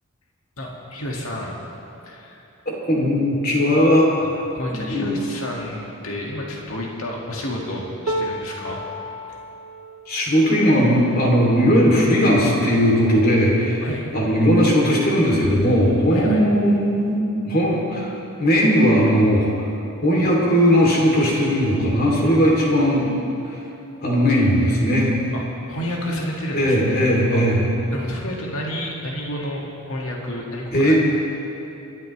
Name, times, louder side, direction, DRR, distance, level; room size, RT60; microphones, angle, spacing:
voice 1, 0.6-1.6 2.0-2.4 4.2-8.8 13.8-14.1 16.1-16.4 25.3-25.4 25.7-27.0 27.3-27.4 27.9-30.9, left 1 dB, 80° left, -2 dB, 2.1 m, -30 dB
voice 2, 2.6-4.1 4.7-5.1 10.1-13.9 14.1-19.5 20.0-23.1 23.5-23.6 24.0-25.1 26.5-27.6 30.7-30.9, equal, 45° left, -3 dB, 3.1 m, -18 dB
sound 1, 8.1-14.2 14.8-15.0 15.3-16.1 17.0-17.1, equal, 85° right, 1.2 m, -35 dB
27.5 x 12.0 x 3.3 m, 2.9 s
head